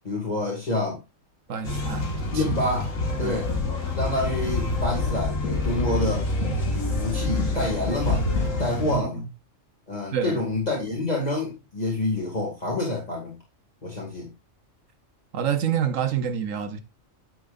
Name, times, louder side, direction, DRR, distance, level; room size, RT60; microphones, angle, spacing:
voice 1, 0.0-1.0 2.3-2.9 3.2-3.5 3.9-6.3 7.0-8.3 8.6-9.2 9.9-13.3 13.8-14.3, left 2 dB, 30° left, 2.4 m, -27 dB
voice 2, 1.5-2.4 3.2-3.4 8.9-9.3 10.1-10.4 15.3-16.8, right 8 dB, 85° right, 1.4 m, -28 dB
sound 1, 1.6-9.0, left 2 dB, 90° left, 2.2 m, -27 dB
9.3 x 7.7 x 2.5 m
omnidirectional pair, 1.3 m